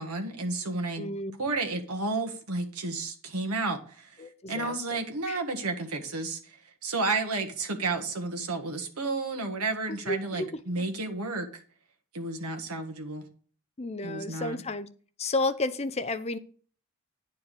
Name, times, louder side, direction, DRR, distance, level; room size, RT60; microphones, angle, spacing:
voice 1, 0.0-1.1 1.4-4.2 4.5-11.5 12.1-13.3 14.0-14.6, right 3 dB, 80° right, 5 dB, 1.6 m, -32 dB
voice 2, 1.0-1.3 4.2-4.8 5.3-5.4 9.9-10.6 13.8-14.9 15.2-16.4, left 2 dB, 30° left, 11 dB, 0.6 m, -32 dB
9.6 x 4.6 x 6.8 m, 0.43 s
head